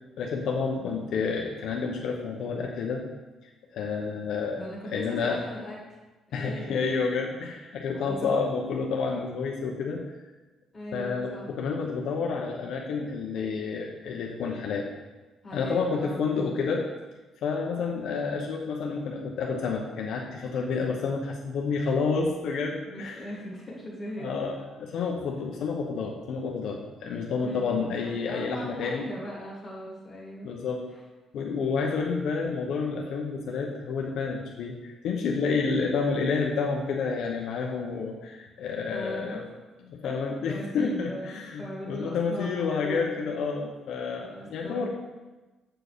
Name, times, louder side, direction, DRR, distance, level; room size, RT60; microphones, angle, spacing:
voice 1, 0.2-3.0 3.7-4.6 4.9-5.4 6.3-10.0 10.9-14.9 15.5-16.9 17.4-23.2 24.2-29.1 30.4-30.9 31.3-39.4 39.9-44.9, left 5 dB, 65° left, 0 dB, 0.9 m, -29 dB
voice 2, 0.8-1.1 4.6-5.8 6.3-7.1 7.9-8.4 10.7-11.5 15.4-16.3 22.9-24.3 27.4-30.5 38.9-39.4 40.5-43.3 44.2-44.9, equal, 15° left, -4 dB, 2.2 m, -39 dB
7.6 x 4.6 x 6.7 m, 1.2 s
cardioid pair, 160°, 0 cm